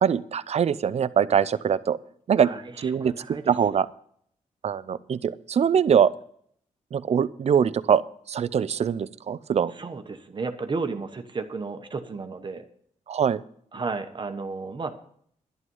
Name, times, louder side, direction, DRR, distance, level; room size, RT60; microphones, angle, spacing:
voice 1, 0.0-2.0 2.3-2.5 2.8-3.9 4.6-6.1 6.9-8.0 8.3-9.7 13.1-13.4, right 8 dB, 50° right, 16 dB, 0.6 m, -23 dB
voice 2, 2.4-3.5 9.8-12.6 13.7-14.9, right 4 dB, 35° right, 6 dB, 1.2 m, -33 dB
11.5 x 11.0 x 5.5 m, 0.63 s
wide cardioid pair, 115°, 14 cm